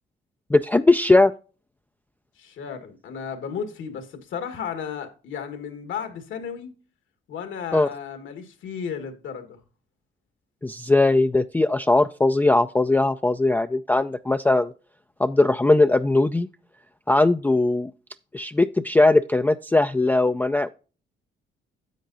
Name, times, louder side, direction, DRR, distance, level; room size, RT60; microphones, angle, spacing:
voice 1, 0.5-1.3 7.7-7.9 10.6-14.7 15.2-16.5 17.1-17.9 18.3-20.7, left 2 dB, 10° left, 0.3 m, -19 dB
voice 2, 2.4-6.7 7.3-9.6, left 7 dB, 75° left, 1.7 m, -34 dB
10.0 x 7.4 x 2.6 m
cardioid pair, 90°, 20 cm